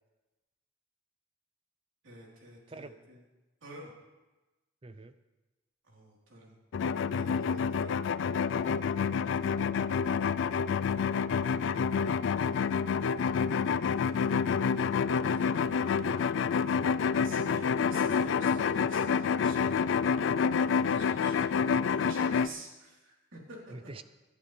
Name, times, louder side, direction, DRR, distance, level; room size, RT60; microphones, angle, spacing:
voice 1, 2.0-3.2 3.6-3.9 5.8-6.5 7.0-7.9 10.1-12.8 13.8-15.8 17.2-19.7 20.6-23.6, right 1 dB, 75° right, -3 dB, 3.7 m, -51 dB
voice 2, 4.8-5.2 17.8-18.1 20.7-21.1 23.7-24.0, right 2 dB, 30° right, 11 dB, 0.5 m, -48 dB
sound 1, 6.7-22.5, left 6 dB, 65° left, 0.3 m, -28 dB
18.5 x 11.5 x 3.3 m, 1.1 s
head